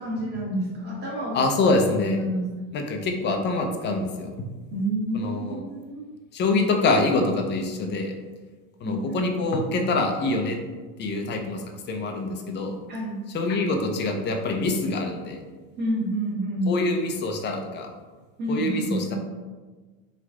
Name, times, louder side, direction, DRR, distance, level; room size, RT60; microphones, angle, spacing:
voice 1, 0.0-1.4 2.1-2.4 4.7-6.1 8.8-9.2 12.9-13.2 15.8-16.7 18.4-19.2, right 1 dB, 25° right, -6 dB, 1.2 m, -29 dB
voice 2, 1.3-2.2 2.7-4.5 5.1-5.6 6.3-8.1 8.8-10.6 11.0-12.8 13.3-15.4 16.7-17.9 18.5-19.2, left 2 dB, 25° left, 3 dB, 0.4 m, -25 dB
3.1 x 2.4 x 3.4 m, 1.3 s
supercardioid pair, 115°, 42 cm